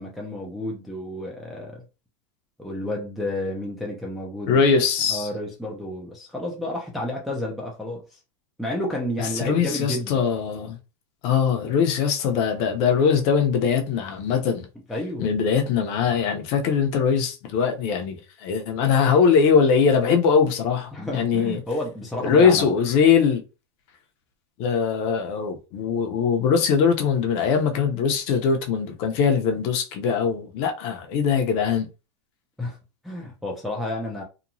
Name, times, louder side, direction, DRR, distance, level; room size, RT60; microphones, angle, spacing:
voice 1, 0.0-1.8 2.6-4.6 5.1-8.2 8.6-10.2 14.9-15.3 20.9-22.7 32.6-32.8 33.0-34.2, left 1 dB, ahead, 0.3 m, -31 dB
voice 2, 4.5-5.3 9.3-10.8 11.2-14.7 15.2-21.6 22.2-23.4 24.6-31.9, left 6 dB, 40° left, 0.6 m, -21 dB
2.9 x 2.2 x 2.6 m
supercardioid pair, 155°, 16 cm